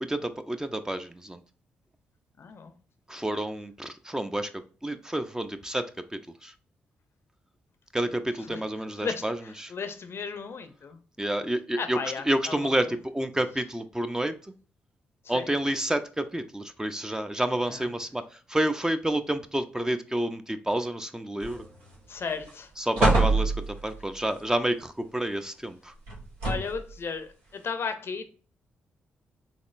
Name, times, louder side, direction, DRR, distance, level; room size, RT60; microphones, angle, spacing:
voice 1, 0.0-1.4 3.1-6.5 7.9-9.7 11.2-12.0 12.3-14.3 15.3-21.6 22.8-25.9, right 1 dB, 10° right, 0.4 m, -29 dB
voice 2, 2.4-2.7 8.5-8.6 9.0-11.0 11.8-12.7 15.2-15.6 17.7-17.9 22.1-22.7 26.4-28.3, left 5 dB, 50° left, 0.5 m, -35 dB
sound 1, 21.4-21.9 22.3-22.5 22.9-24.0 26.1-26.9 27.7-27.8, right 2 dB, 85° right, 1.0 m, -25 dB
4.1 x 3.1 x 2.5 m
hypercardioid pair, 40°, 5 cm